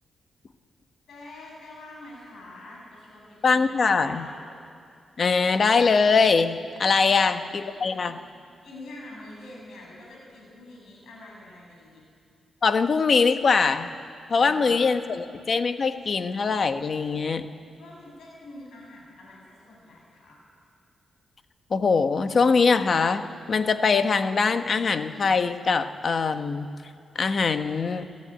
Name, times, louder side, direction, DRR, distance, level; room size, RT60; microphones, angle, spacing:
voice 1, 1.1-4.4 7.0-7.4 7.7-8.1 8.6-12.1 14.4-14.9 17.7-20.4, left 2 dB, 85° left, -2 dB, 7.7 m, -45 dB
voice 2, 3.4-4.3 5.2-8.2 12.6-13.9 14.3-17.5 21.7-26.7 27.1-28.1, left 4 dB, 50° left, 8 dB, 1.3 m, -22 dB
26.5 x 15.5 x 9.1 m, 2.4 s
cardioid pair, 105°, 0 cm